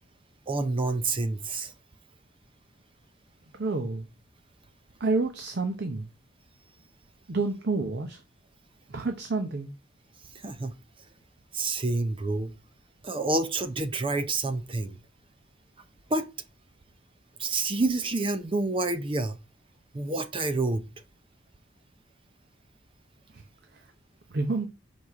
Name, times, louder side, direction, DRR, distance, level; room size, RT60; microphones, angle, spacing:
voice 1, 0.5-1.7 10.4-10.8 11.5-12.6 13.0-15.0 16.1-16.3 17.4-19.4 19.9-20.9, right 2 dB, 30° right, 0.5 m, -28 dB
voice 2, 3.5-4.1 5.0-6.1 7.3-8.2 8.9-9.7 23.3-23.4 23.7-23.9 24.3-24.7, right 3 dB, 60° right, 0.8 m, -29 dB
4.9 x 4.1 x 5.8 m
head